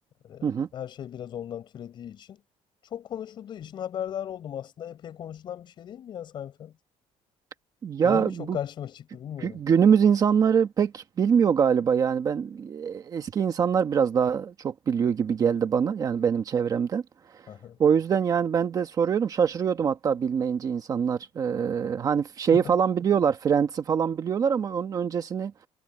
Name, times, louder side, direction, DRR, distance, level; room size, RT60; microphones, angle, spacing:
voice 1, 0.2-2.4 2.9-6.7 8.0-9.6 17.5-17.8 22.5-22.7, left 10 dB, 40° left, 6.6 m, -37 dB
voice 2, 7.8-8.6 9.4-17.0 17.8-25.5, right 7 dB, 30° right, 1.1 m, -24 dB
cardioid pair, 175°, 12 cm